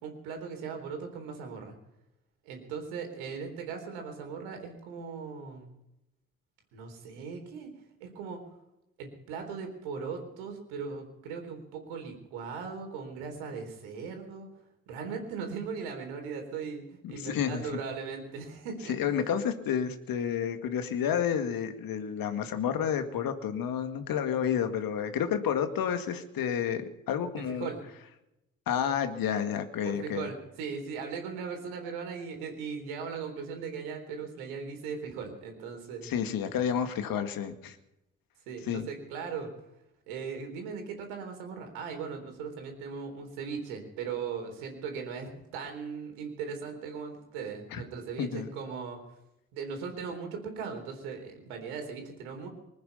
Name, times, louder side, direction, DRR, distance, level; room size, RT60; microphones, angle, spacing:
voice 1, 0.0-1.7 2.4-5.7 6.7-7.7 8.0-8.4 9.0-14.5 14.9-19.3 27.3-27.8 29.8-36.1 38.5-39.5 40.1-49.0 49.5-52.5, right 5 dB, 70° right, 4 dB, 3.9 m, -38 dB
voice 2, 17.0-17.6 18.9-27.7 28.7-30.3 36.0-37.8 38.7-38.9 47.7-47.8 48.2-48.5, left 8 dB, 60° left, 8 dB, 2.1 m, -30 dB
25.0 x 9.5 x 5.7 m, 0.88 s
figure-of-eight pair, 40°, 40 cm